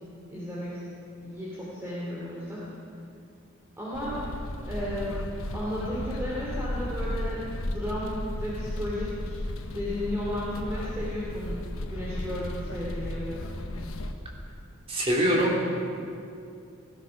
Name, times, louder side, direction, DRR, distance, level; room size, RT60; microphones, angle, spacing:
voice 1, 0.3-0.8 1.2-2.6 3.8-4.2 4.6-5.2 5.5-9.4 9.7-11.5 11.9-13.4, equal, 10° right, -8 dB, 2.8 m, -34 dB
sound 1, 3.9-14.1, left 1 dB, 80° left, 1.1 m, -34 dB
voice 2, 14.9-15.8, equal, 25° right, -3 dB, 3.0 m, -24 dB
18.5 x 13.0 x 5.8 m, 2.5 s
head